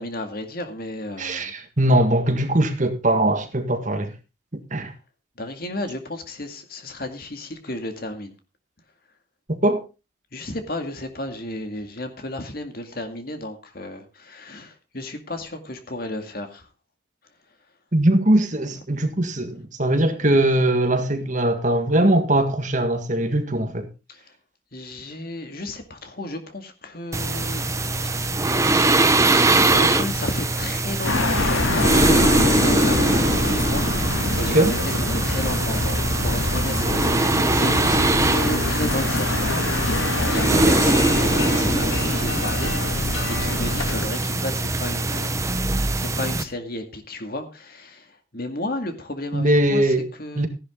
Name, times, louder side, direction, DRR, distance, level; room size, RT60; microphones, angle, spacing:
voice 1, 0.0-1.5 5.4-8.3 10.3-16.7 24.1-24.3 24.7-27.6 29.1-39.9 40.3-45.5 45.9-50.5, left 1 dB, 50° left, 2.2 m, -33 dB
voice 2, 1.2-4.1 4.5-4.9 9.5-9.8 17.9-23.9 34.5-34.7 49.3-50.1 50.4-50.5, right 1 dB, 40° right, 1.7 m, -21 dB
sound 1, 27.1-46.4, right 2 dB, 15° right, 0.8 m, -22 dB
sound 2, 31.0-44.1, left 2 dB, 75° left, 2.1 m, -25 dB
15.0 x 11.0 x 3.7 m
head